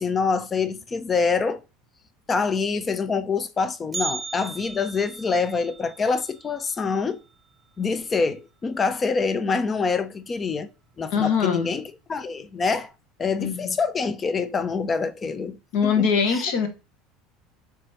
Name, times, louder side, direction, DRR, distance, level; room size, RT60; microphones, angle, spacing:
voice 1, 0.0-1.6 2.3-7.2 7.8-10.7 11.0-12.9 13.2-16.4, left 4 dB, 30° left, 0.5 m, -26 dB
Bell, 3.9-8.0 8.3-8.4 8.9-9.0 9.8-9.9 10.6-10.9 11.3-11.4, right 4 dB, 25° right, 0.8 m, -37 dB
voice 2, 11.1-11.7 13.4-13.7 15.7-16.7, left 6 dB, 60° left, 0.9 m, -22 dB
3.4 x 3.1 x 4.0 m
hypercardioid pair, 70°, 0 cm